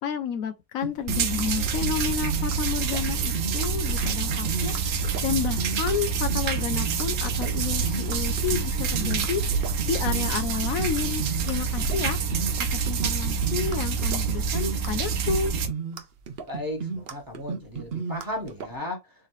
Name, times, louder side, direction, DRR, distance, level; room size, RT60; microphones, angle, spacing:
voice 1, 0.0-12.2 12.7-15.5, left 7 dB, 75° left, 1.0 m, -31 dB
sound 1, 0.8-18.7, right 5 dB, 50° right, 0.9 m, -34 dB
sound 2, 1.1-15.7, right 5 dB, 85° right, 1.3 m, -27 dB
voice 2, 16.5-19.1, left 1 dB, 15° right, 1.5 m, -35 dB
4.1 x 3.8 x 3.0 m
omnidirectional pair, 1.5 m